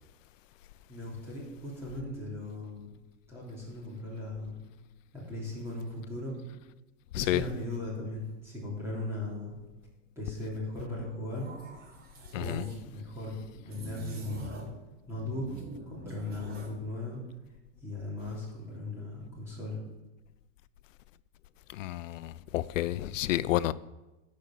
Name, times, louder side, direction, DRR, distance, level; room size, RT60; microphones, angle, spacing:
voice 1, 0.9-2.9 3.3-4.6 5.1-6.4 7.1-9.5 10.2-11.5 12.3-14.7 15.1-15.5 15.9-17.2 17.8-19.8, left 2 dB, 5° right, 3.4 m, -38 dB
sound 1, 11.3-12.8 13.7-14.8 15.1-16.8, right 2 dB, 25° right, 1.6 m, -45 dB
voice 2, 12.3-12.6 21.7-23.7, left 14 dB, 75° left, 0.6 m, -30 dB
11.5 x 5.2 x 7.4 m
supercardioid pair, 155°, 38 cm